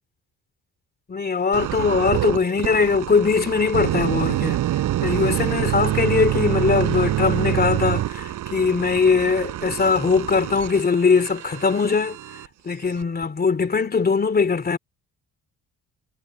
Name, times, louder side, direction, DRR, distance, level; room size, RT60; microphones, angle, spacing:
voice 1, 1.1-4.6 5.0-12.2 12.6-14.8, left 5 dB, 30° left, 2.7 m, -21 dB
sound 1, 1.5-12.5 13.0-13.2, right 13 dB, 85° right, 4.6 m, -26 dB
sound 2, 5.0-11.9, right 9 dB, 65° right, 7.3 m, -44 dB
cardioid pair, 90°, 30 cm